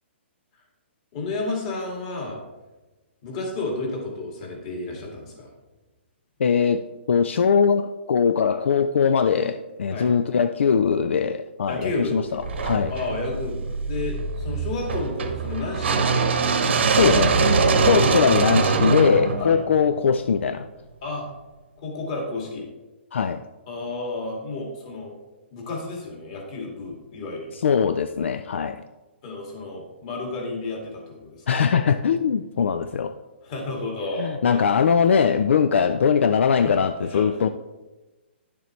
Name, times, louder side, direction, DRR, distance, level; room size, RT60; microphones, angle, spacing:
voice 1, 1.1-2.4 3.2-5.5 9.9-10.1 11.7-12.2 12.9-16.3 17.9-18.1 19.4-19.6 21.0-21.3 21.8-22.7 23.7-25.1 25.5-27.6 29.2-31.5 33.4-34.6 36.6-36.7 37.0-37.5, left 2 dB, 35° left, 2.1 m, -31 dB
voice 2, 6.4-6.8 7.1-12.9 16.9-17.4 17.8-20.7 23.1-23.4 27.6-28.8 31.5-33.2 34.2-37.5, left 6 dB, 75° left, 0.4 m, -21 dB
sound 1, 12.4-20.5, right 4 dB, 70° right, 1.1 m, -23 dB
10.5 x 6.9 x 3.2 m
hypercardioid pair, 165°, 6 cm